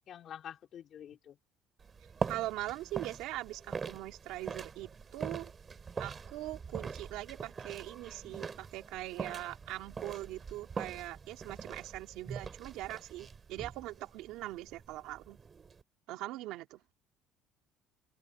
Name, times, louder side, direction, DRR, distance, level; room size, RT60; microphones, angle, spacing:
voice 1, 0.1-1.4, left 9 dB, 45° left, 3.5 m, -47 dB
sound 1, 1.8-15.8, right 5 dB, 25° right, 2.7 m, -43 dB
voice 2, 2.3-5.5 6.0-15.4 16.1-16.8, right 16 dB, 75° right, 2.5 m, -41 dB
cardioid pair, 145°, 0 cm